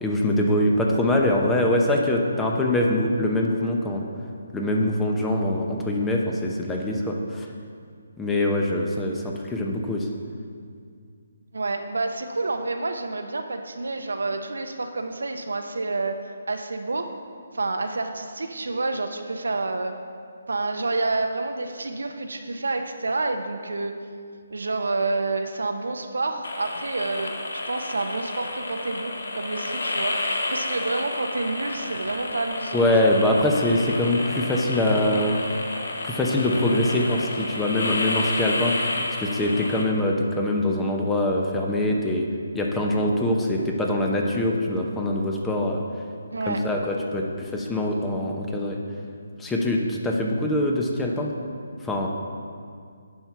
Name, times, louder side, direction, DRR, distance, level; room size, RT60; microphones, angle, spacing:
voice 1, 0.0-4.0 4.5-7.5 8.2-10.1 32.7-35.4 36.0-38.7 39.2-42.3 42.5-45.8 46.5-48.8 49.4-51.3 51.8-52.1, left 1 dB, 10° left, 0 dB, 0.8 m, -23 dB
voice 2, 11.5-16.2 16.5-17.1 17.5-19.9 20.5-24.0 24.5-27.4 27.7-33.4 46.3-46.6, right 3 dB, 85° right, 6 dB, 0.8 m, -28 dB
sound 1, 26.4-39.8, left 2 dB, 70° left, 1.0 m, -30 dB
10.0 x 4.5 x 5.6 m, 2.2 s
hypercardioid pair, 155°, 0 cm